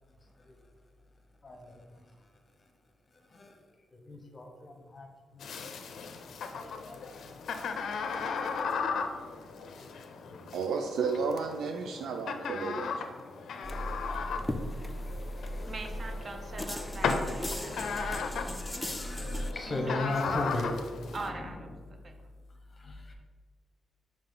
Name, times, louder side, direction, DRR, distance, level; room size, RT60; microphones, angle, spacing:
voice 1, 1.4-2.0 3.3-3.6 3.9-5.6 6.5-7.1 7.5-7.6 8.0-8.2 8.5-8.6 10.2-10.6 13.5-13.7 15.5-15.7 17.6-18.0 18.7-21.5 22.1-22.2 22.7-23.1, left 2 dB, 25° left, 2 dB, 0.9 m, -38 dB
sound 1, 5.4-21.3, left 5 dB, 60° left, 0.5 m, -37 dB
voice 2, 10.5-12.9, right 5 dB, 80° right, 4 dB, 0.4 m, -32 dB
sound 2, 13.6-19.5, equal, 5° left, 0.4 m, -37 dB
voice 3, 15.7-18.3 19.7-20.4 21.1-22.1, right 2 dB, 30° right, 4 dB, 0.6 m, -42 dB
5.6 x 4.9 x 3.9 m, 1.4 s
wide cardioid pair, 170°, 0 cm